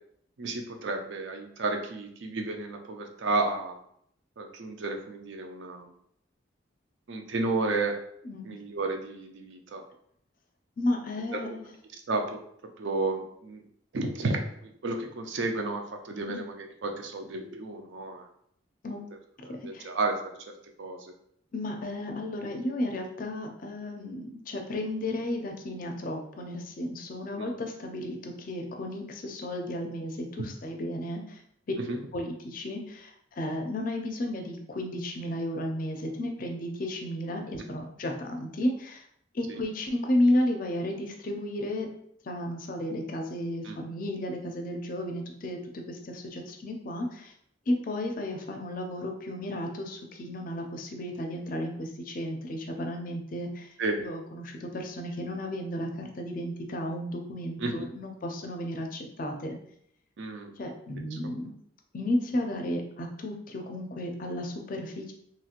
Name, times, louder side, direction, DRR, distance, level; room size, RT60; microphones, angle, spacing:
voice 1, 0.4-3.8 4.4-5.9 7.1-8.0 8.4-9.8 11.3-11.4 12.1-12.4 12.8-13.6 13.9-18.3 19.4-20.4 20.8-21.1 27.3-27.5 31.8-32.0 37.6-37.7 39.5-39.6 43.6-43.8 53.8-54.0 57.6-57.9 60.2-60.5, right 3 dB, 70° right, 4 dB, 0.5 m, -32 dB
voice 2, 8.2-8.6 10.8-11.6 16.2-16.4 18.8-19.0 19.5-19.9 21.5-31.4 32.1-39.0 39.3-41.9 42.2-47.3 47.7-59.6 60.6-61.5 61.9-65.1, left 1 dB, 45° left, 3 dB, 0.4 m, -33 dB
2.9 x 2.8 x 2.4 m, 0.69 s
head